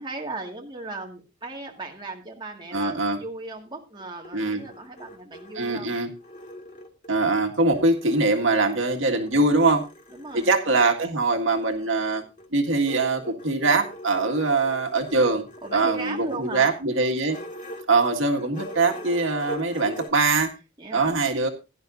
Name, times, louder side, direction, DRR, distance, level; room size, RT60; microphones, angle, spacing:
voice 1, 0.0-5.9 10.1-10.5 15.6-16.7 20.8-21.2, right 2 dB, 25° right, 1 dB, 1.9 m, -37 dB
voice 2, 2.7-3.2 4.3-4.6 5.6-6.1 7.1-9.8 10.3-12.2 12.5-15.4 15.7-17.4 17.9-20.5 20.9-21.5, right 3 dB, 75° right, 3 dB, 1.9 m, -22 dB
sound 1, 4.0-7.3 7.7-10.6 11.5-20.1, equal, 40° left, 2.0 m, -43 dB
16.5 x 11.0 x 2.6 m, 0.27 s
head